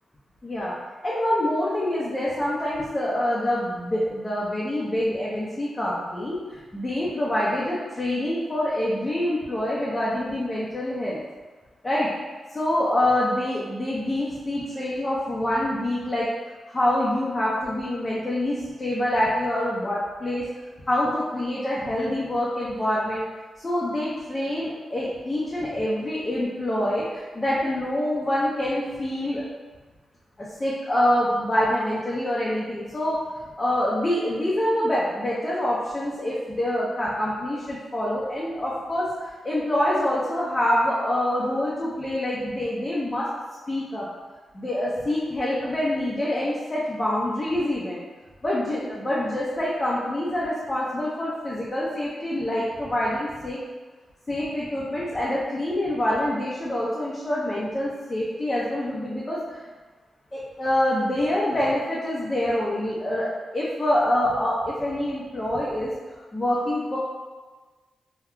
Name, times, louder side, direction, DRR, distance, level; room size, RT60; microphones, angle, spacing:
voice 1, 0.4-0.7 1.0-11.2 11.8-12.1 12.5-16.3 16.7-20.4 20.9-23.2 23.6-29.4 30.4-33.2 33.6-43.3 43.7-44.1 44.5-48.0 48.4-53.6 54.3-59.6 60.3-65.9 66.3-67.0, left 1 dB, 30° left, -7 dB, 0.6 m, -26 dB
3.6 x 2.2 x 2.2 m, 1.3 s
cardioid pair, 65°, 0 cm